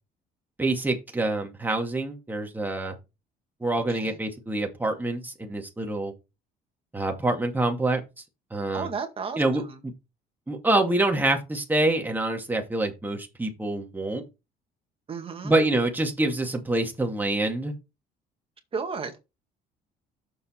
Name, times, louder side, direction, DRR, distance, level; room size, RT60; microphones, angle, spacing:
voice 1, 0.6-3.0 3.6-6.1 6.9-8.0 8.5-8.9 9.4-9.6 10.5-14.2 15.4-17.7, right 2 dB, 10° right, 2.1 m, -26 dB
voice 2, 8.7-9.7 15.1-15.5 18.7-19.2, right 5 dB, 35° right, 1.9 m, -33 dB
7.1 x 5.3 x 4.4 m
cardioid pair, 110°, 17 cm